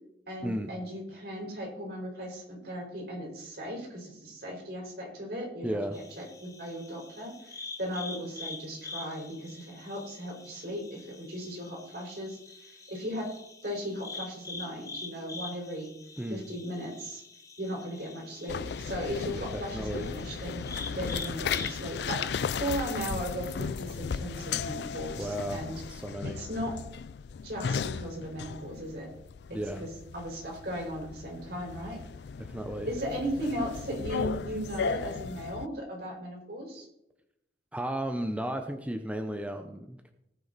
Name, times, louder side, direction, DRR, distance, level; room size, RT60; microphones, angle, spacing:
voice 1, 0.3-5.8 6.2-13.3 13.6-15.9 16.3-17.2 17.6-25.8 26.2-26.8 27.4-29.1 29.5-32.0 32.8-36.9, equal, 65° right, -1 dB, 4.7 m, -37 dB
voice 2, 5.6-6.0 16.2-16.5 19.3-20.1 25.2-26.4 29.5-29.9 32.4-32.9 37.7-40.1, right 1 dB, 10° right, 6 dB, 0.7 m, -34 dB
sound 1, 5.9-23.1, left 3 dB, 20° left, 1.1 m, -45 dB
sound 2, 18.5-35.7, left 6 dB, 70° left, 0.4 m, -36 dB
18.5 x 6.4 x 4.0 m, 0.82 s
head